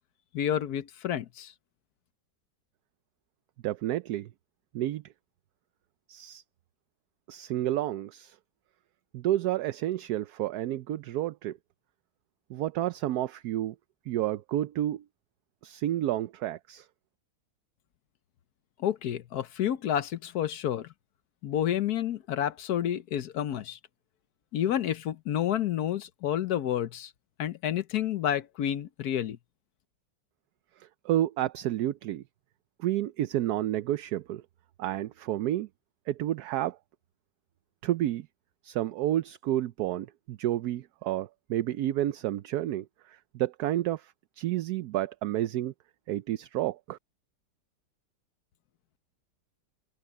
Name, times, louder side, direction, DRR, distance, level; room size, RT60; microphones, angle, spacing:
voice 1, 0.3-1.5 18.8-20.9 21.4-23.8 24.5-27.1 27.4-29.4, left 10 dB, 70° left, 1.3 m, -29 dB
voice 2, 3.6-4.3 4.7-5.0 6.1-6.4 7.3-8.4 9.1-11.6 12.5-13.7 14.1-15.0 15.6-16.9 30.8-32.2 32.8-34.4 34.8-35.7 36.1-36.8 37.8-38.3 38.6-45.7 46.1-47.0, right 13 dB, 70° right, 1.1 m, -30 dB
open air
omnidirectional pair, 1.8 m